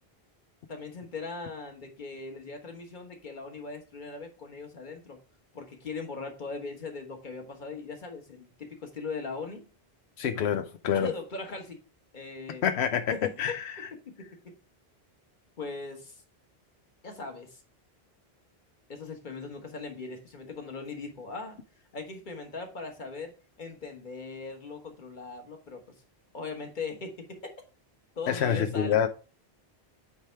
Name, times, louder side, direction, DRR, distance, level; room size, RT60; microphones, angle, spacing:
voice 1, 0.7-5.2 5.5-9.7 10.9-11.8 12.1-12.6 13.1-13.4 14.2-14.3 15.6-16.2 17.0-17.6 18.9-21.6 21.9-26.0 26.3-27.4 28.2-29.1, left 4 dB, 50° left, 1.5 m, -39 dB
voice 2, 10.2-11.1 12.6-13.9 28.3-29.1, left 8 dB, 90° left, 0.9 m, -27 dB
8.3 x 3.4 x 4.5 m
omnidirectional pair, 1.1 m